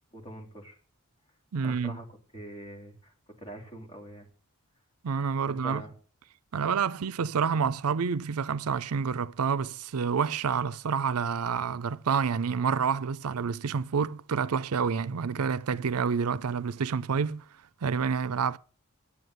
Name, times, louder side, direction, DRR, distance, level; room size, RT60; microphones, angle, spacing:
voice 1, 0.1-0.8 1.6-2.0 2.3-4.3 5.4-5.9, right 1 dB, 25° left, 3.1 m, -44 dB
voice 2, 1.5-2.0 5.0-5.8 6.5-17.4 17.8-18.6, right 6 dB, 80° right, 0.5 m, -28 dB
11.0 x 8.6 x 7.8 m
head